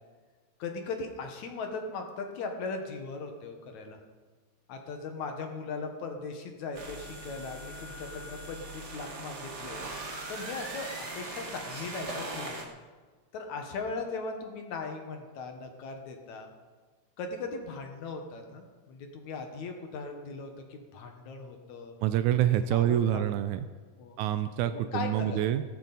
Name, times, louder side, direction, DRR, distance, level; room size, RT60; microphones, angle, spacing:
voice 1, 0.6-4.0 4.7-9.8 10.3-12.7 13.3-16.5 17.2-21.9 22.4-23.3 24.0-24.2 24.6-25.4, left 4 dB, 65° left, 4 dB, 2.5 m, -39 dB
sound 1, 6.7-12.6, right 2 dB, 55° right, 0.7 m, -40 dB
voice 2, 22.0-23.6 24.2-25.6, right 11 dB, 90° right, 10 dB, 1.7 m, -26 dB
16.5 x 13.5 x 4.1 m, 1.4 s
omnidirectional pair, 4.0 m